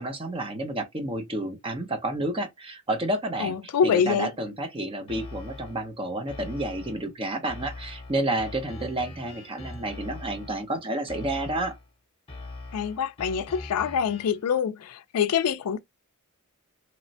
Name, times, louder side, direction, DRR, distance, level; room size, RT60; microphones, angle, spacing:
voice 1, 0.0-3.5 3.8-11.7, right 1 dB, 25° right, 0.6 m, -30 dB
voice 2, 3.4-4.3 12.7-15.8, left 7 dB, 85° left, 0.4 m, -25 dB
sound 1, 5.1-5.9 6.3-7.1 7.5-10.7 11.1-11.9 12.3-14.5, left 2 dB, 25° left, 0.9 m, -42 dB
3.0 x 2.1 x 2.6 m
head